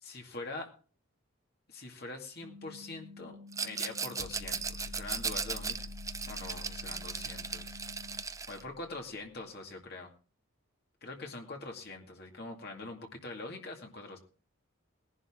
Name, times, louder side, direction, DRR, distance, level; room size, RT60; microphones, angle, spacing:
voice 1, 0.0-0.7 1.7-5.9 6.3-7.8 8.5-10.1 11.0-14.2, left 2 dB, 50° left, 2 dB, 2.2 m, -44 dB
sound 1, 2.4-8.2, left 3 dB, 60° right, 1.7 m, -51 dB
Rattle, 3.5-8.6, right 5 dB, 15° right, 0.7 m, -37 dB
sound 2, 4.2-9.2, left 2 dB, 75° left, 1.0 m, -48 dB
19.0 x 11.0 x 3.7 m, 0.38 s
head